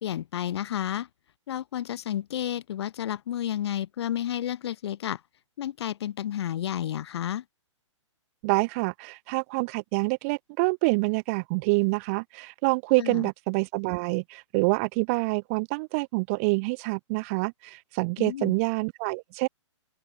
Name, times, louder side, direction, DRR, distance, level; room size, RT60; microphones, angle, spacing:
voice 1, 0.0-1.1 1.5-5.2 5.6-7.4 13.0-13.3 18.2-18.5, left 11 dB, 55° left, 1.5 m, -31 dB
voice 2, 8.4-19.5, right 29 dB, 30° right, 0.5 m, -27 dB
open air
hypercardioid pair, 140°, 16 cm